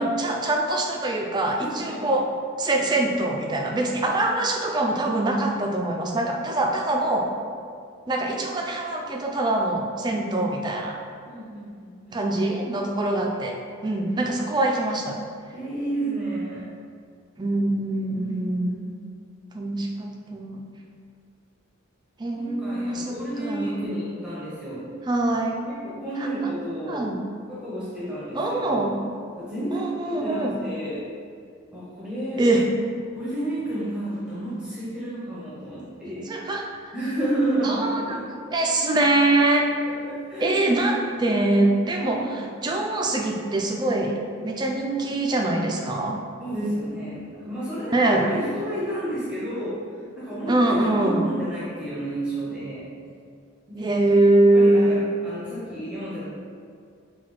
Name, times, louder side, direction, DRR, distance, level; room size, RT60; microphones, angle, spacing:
voice 1, 0.0-2.3 2.6-7.3 8.1-11.0 12.1-15.2 17.4-18.8 19.5-20.6 22.2-23.8 25.1-25.6 26.2-26.3 26.9-27.2 28.3-29.0 29.7-30.6 32.4-32.7 36.1-36.6 37.6-38.0 38.5-39.7 40.4-44.1 44.4-46.2 47.9-48.3 50.5-51.3 53.8-55.0, right 2 dB, 20° right, 1 dB, 0.3 m, -23 dB
voice 2, 1.6-2.1 4.1-4.3 11.3-12.4 15.5-16.7 18.1-18.5 22.3-24.9 25.7-27.1 27.5-29.0 29.3-31.1 31.7-32.4 33.1-36.3 36.9-38.5 39.8-40.8 42.1-42.3 46.4-49.8 50.2-52.9 53.7-54.2 54.5-56.3, right 1 dB, 5° right, -9 dB, 0.7 m, -31 dB
5.7 x 2.3 x 3.1 m, 2.2 s
head